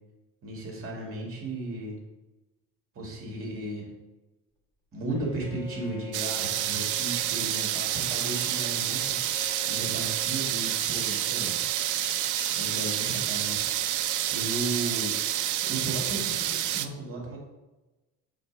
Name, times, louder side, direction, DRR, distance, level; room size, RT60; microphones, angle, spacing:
voice 1, 0.4-2.0 2.9-3.9 4.9-9.2 9.6-11.6 12.6-13.6 14.3-15.2 15.6-17.4, right 2 dB, 40° right, -1 dB, 2.0 m, -35 dB
Bowed string instrument, 5.1-10.6, left 4 dB, 15° left, 1.4 m, -46 dB
sound 1, 6.1-16.9, right 12 dB, 60° right, 0.5 m, -28 dB
sound 2, 6.4-10.0 10.8-14.0, left 6 dB, 55° left, 0.9 m, -48 dB
5.2 x 4.3 x 5.1 m, 1.1 s
cardioid pair, 125°, 34 cm